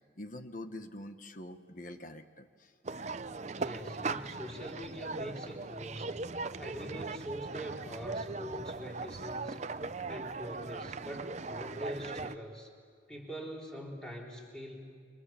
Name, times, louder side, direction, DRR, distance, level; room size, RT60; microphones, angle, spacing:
voice 1, 0.2-2.7, left 1 dB, 45° left, 8 dB, 1.3 m, -45 dB
Skatepark competition atmos, 2.8-12.4, right 3 dB, 35° right, 0.6 m, -39 dB
voice 2, 3.6-6.2 6.6-9.6 10.1-12.7 13.1-14.9, equal, 5° left, -2 dB, 3.8 m, -43 dB
29.0 x 25.0 x 7.2 m, 2.1 s
head